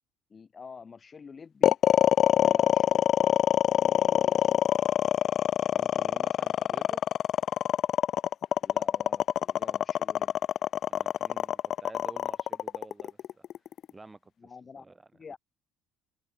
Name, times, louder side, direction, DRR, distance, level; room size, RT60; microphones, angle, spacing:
voice 1, 0.3-1.8 2.4-4.8 8.6-10.4 14.4-14.9 15.1-15.4, left 5 dB, 25° left, 7.8 m, -48 dB
sound 1, 1.6-13.9, left 10 dB, 50° left, 0.4 m, -24 dB
voice 2, 5.7-7.0 10.9-13.4 13.9-14.3 14.8-15.0, right 3 dB, 15° right, 2.7 m, -50 dB
open air
cardioid pair, 125°, 0 cm